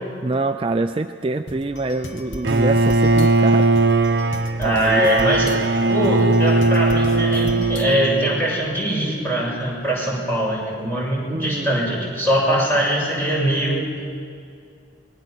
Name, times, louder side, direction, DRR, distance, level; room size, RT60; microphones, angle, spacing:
voice 1, 0.2-4.1 4.6-5.1 11.3-11.7, right 2 dB, 30° right, 7 dB, 0.5 m, -25 dB
sound 1, 1.5-8.3, left 1 dB, 80° left, 1.7 m, -36 dB
Bowed string instrument, 2.4-8.6, right 2 dB, 65° right, 0.8 m, -19 dB
voice 2, 4.6-5.5 5.9-13.9, equal, 10° left, -4 dB, 6.4 m, -22 dB
25.5 x 20.5 x 6.1 m, 2.3 s
head